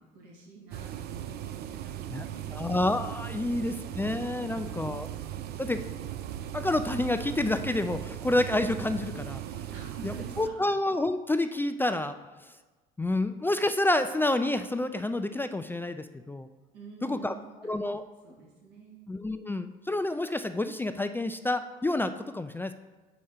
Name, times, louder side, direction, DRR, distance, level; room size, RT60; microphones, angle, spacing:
voice 1, 0.1-2.7 3.4-3.9 4.4-5.0 9.7-10.5 16.7-17.7 18.2-19.0, right 4 dB, 85° right, -4 dB, 2.0 m, -49 dB
sound 1, 0.7-10.5, right 11 dB, 55° right, 0.5 m, -38 dB
voice 2, 2.5-5.1 5.6-5.8 6.5-9.7 10.0-12.2 13.0-16.5 17.0-17.3 17.6-18.0 19.1-22.7, left 2 dB, 10° left, 9 dB, 0.3 m, -29 dB
4.9 x 4.2 x 5.6 m, 1.2 s
hypercardioid pair, 70°, 20 cm